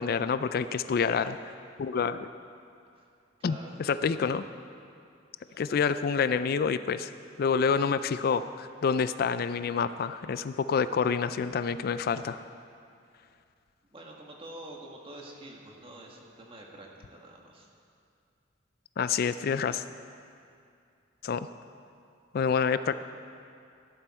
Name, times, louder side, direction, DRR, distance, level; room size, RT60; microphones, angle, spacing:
voice 1, 0.0-2.3 3.4-4.4 5.6-7.1 7.4-12.4 19.0-19.8 21.2-21.5 22.3-22.9, left 6 dB, 55° left, 13 dB, 0.4 m, -28 dB
voice 2, 3.4-4.2 5.5-5.6 13.9-17.7, right 1 dB, 30° right, -1 dB, 1.7 m, -47 dB
16.5 x 11.0 x 4.3 m, 2.5 s
head